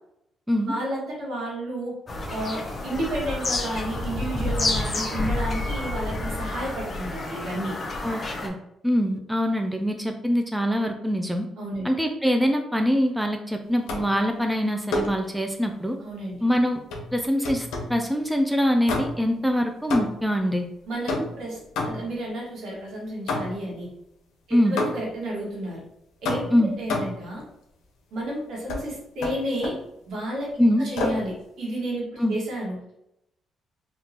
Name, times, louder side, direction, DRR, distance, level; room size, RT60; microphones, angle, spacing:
voice 1, 0.7-1.9 2.3-7.7 11.6-11.9 16.0-16.4 20.9-23.9 24.5-25.8 26.2-27.4 28.1-29.7 30.1-32.8, right 1 dB, 75° right, -4 dB, 1.5 m, -31 dB
Bird vocalization bird call bird song, 2.1-8.5, left 2 dB, 35° left, 0.6 m, -29 dB
voice 2, 8.0-8.5 8.8-11.5 11.8-16.0 16.4-16.8 17.1-20.7 24.5-24.8 26.5-26.7 30.6-30.9 32.2-32.4, equal, 5° right, 4 dB, 0.3 m, -23 dB
sound 1, 13.9-14.2 14.9-15.3 16.9-18.0 18.9-19.4 19.9-20.4 21.1-22.2 23.3-23.7 24.8-25.2 26.2-27.3 28.7-28.9 29.2-29.9 31.0-31.3, left 2 dB, 90° left, 0.6 m, -29 dB
3.6 x 2.3 x 2.8 m, 0.82 s
cardioid pair, 90°, 0 cm